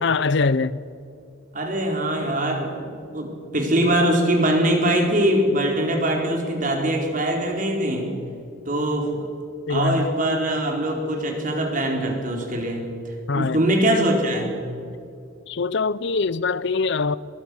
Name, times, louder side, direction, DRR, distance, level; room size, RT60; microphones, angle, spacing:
voice 1, 0.0-0.8 9.7-10.1 13.3-13.6 15.5-17.2, left 4 dB, 60° left, 0.6 m, -23 dB
voice 2, 1.5-8.1 8.7-9.3 9.7-14.6, right 1 dB, 40° right, 4.3 m, -22 dB
24.0 x 22.5 x 6.4 m
head